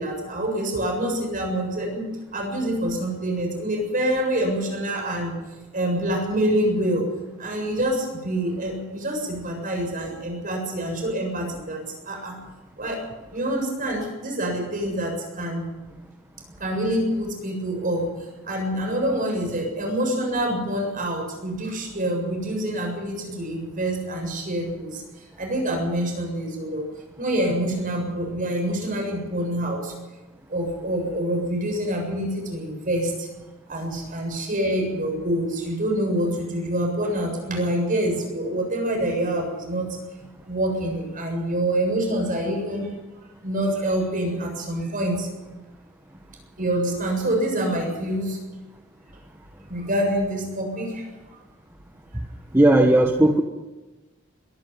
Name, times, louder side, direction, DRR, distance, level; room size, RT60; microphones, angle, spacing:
voice 1, 0.0-5.4 5.7-7.1 7.4-12.4 12.8-15.7 16.6-18.1 18.4-25.0 25.4-26.9 27.2-29.9 30.5-33.3 33.7-40.0 40.5-42.9 43.4-45.3 46.6-48.4 49.7-51.1, right 1 dB, 40° right, 2 dB, 7.3 m, -26 dB
voice 2, 52.5-53.4, right 1 dB, 10° right, 3 dB, 1.2 m, -16 dB
23.0 x 13.0 x 9.4 m, 1.2 s
head